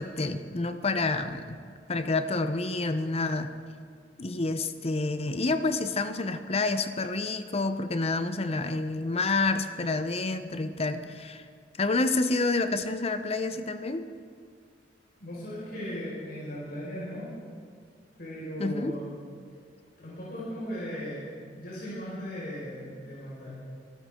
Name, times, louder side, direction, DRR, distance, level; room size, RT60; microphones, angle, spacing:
voice 1, 0.0-1.6 1.9-3.5 4.2-11.4 11.8-14.0 18.6-18.9, left 3 dB, 35° left, 10 dB, 0.7 m, -28 dB
voice 2, 15.2-17.3 18.2-19.1 20.0-21.2 21.5-23.5, equal, 60° left, -8 dB, 5.4 m, -37 dB
24.0 x 13.5 x 3.7 m, 2.1 s
head